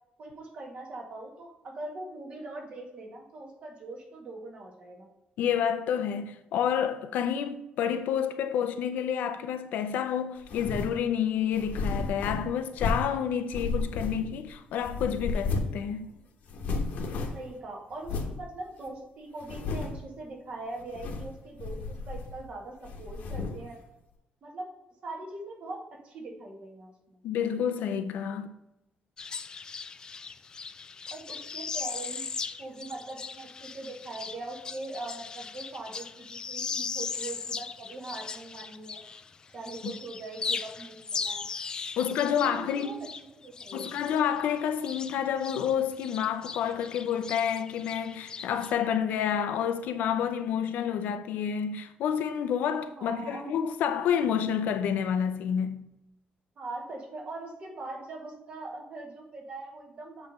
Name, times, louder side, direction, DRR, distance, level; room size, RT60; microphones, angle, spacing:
voice 1, 0.2-5.1 17.3-23.8 24.4-24.7 25.0-27.2 31.1-32.3 32.6-39.0 39.5-41.4 42.0-43.1 43.4-44.0 53.0-53.5 56.6-60.3, right 2 dB, 45° right, 1.9 m, -41 dB
voice 2, 5.4-16.1 17.1-17.2 27.2-28.5 42.0-42.9 43.7-55.9, left 8 dB, 85° left, 0.7 m, -29 dB
sound 1, 10.4-11.0 11.5-13.2 13.5-14.5 14.8-15.8 16.1-16.2 16.5-17.5 18.0-18.4 18.9-19.0 19.4-20.1 20.8-21.3 21.6-22.5 22.8-23.7, left 3 dB, 65° left, 1.2 m, -33 dB
sound 2, 29.2-39.3 39.6-45.7 46.0-48.7, left 5 dB, 25° left, 0.4 m, -38 dB
8.1 x 3.4 x 5.3 m
cardioid pair, 155°, 3 cm